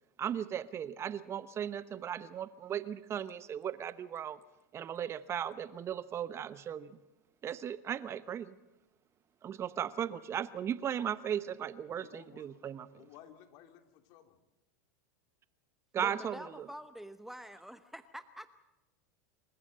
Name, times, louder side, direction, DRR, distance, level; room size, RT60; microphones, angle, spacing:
voice 1, 0.2-4.4 4.7-7.0 7.4-8.6 9.4-13.0 15.9-16.7, right 9 dB, 30° right, 16 dB, 0.9 m, -37 dB
voice 2, 11.9-12.5 12.9-14.4, left 10 dB, 55° left, 7 dB, 2.7 m, -56 dB
voice 3, 16.0-18.5, equal, 5° right, 12 dB, 0.8 m, -46 dB
27.0 x 14.5 x 7.8 m, 0.98 s
hypercardioid pair, 105°, 9 cm